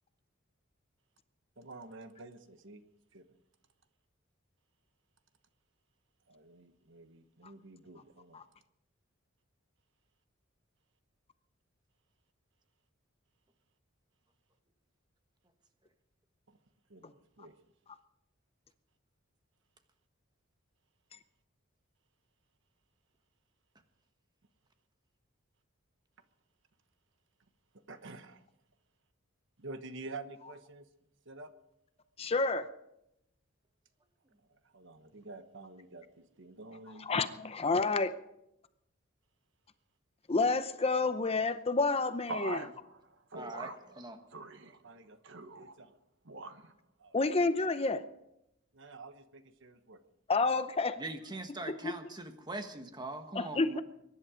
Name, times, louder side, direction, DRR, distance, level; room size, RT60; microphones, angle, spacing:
voice 1, 1.6-2.8 3.1-3.3 6.3-8.4 16.5-16.6 16.9-17.5 27.9-28.4 29.6-30.9 31.3-31.5 34.7-37.1 42.3-44.0 44.3-45.9 46.2-46.7 47.0-47.1 48.7-50.0, right 3 dB, 65° right, 10 dB, 1.2 m, -47 dB
voice 2, 32.2-32.7 37.0-38.1 40.3-42.6 47.1-48.0 50.3-51.0 51.7-51.9 53.3-53.8, left 3 dB, 30° left, 11 dB, 0.6 m, -29 dB
voice 3, 43.4-43.7 44.0-44.2 51.0-53.8, right 2 dB, 20° right, 7 dB, 1.4 m, -41 dB
23.0 x 11.0 x 5.1 m, 0.83 s
head